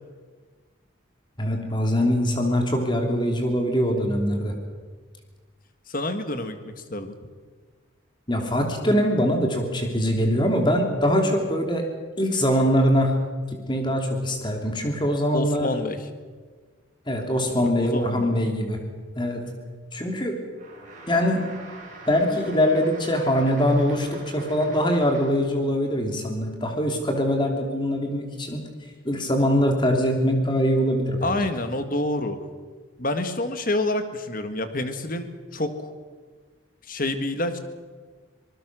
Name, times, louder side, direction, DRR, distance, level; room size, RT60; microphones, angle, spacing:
voice 1, 1.4-4.5 8.3-11.8 12.2-13.2 13.7-15.8 17.1-18.8 19.2-19.4 19.9-20.3 21.1-21.4 22.1-28.7 29.0-31.4, equal, 20° left, 3 dB, 3.2 m, -23 dB
voice 2, 5.9-7.1 15.3-16.0 17.5-18.4 31.2-32.4 33.0-35.9 36.9-37.6, left 1 dB, 40° left, 9 dB, 1.8 m, -28 dB
sound 1, 20.5-25.5, right 3 dB, 40° right, 7.1 m, -44 dB
25.5 x 19.5 x 6.3 m, 1.5 s
head